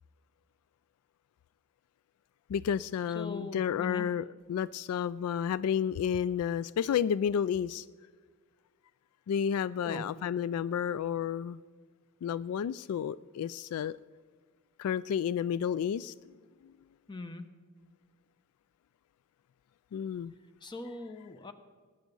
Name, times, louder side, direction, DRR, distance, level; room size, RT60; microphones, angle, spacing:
voice 1, 2.5-7.9 9.3-11.6 12.2-14.0 14.8-16.1 16.6-16.7 19.9-20.3, left 8 dB, 85° left, 17 dB, 0.3 m, -31 dB
voice 2, 3.1-4.1 9.8-10.1 17.1-17.5 20.6-21.5, left 3 dB, 20° left, 9 dB, 0.9 m, -40 dB
18.5 x 9.2 x 5.4 m, 1.5 s
head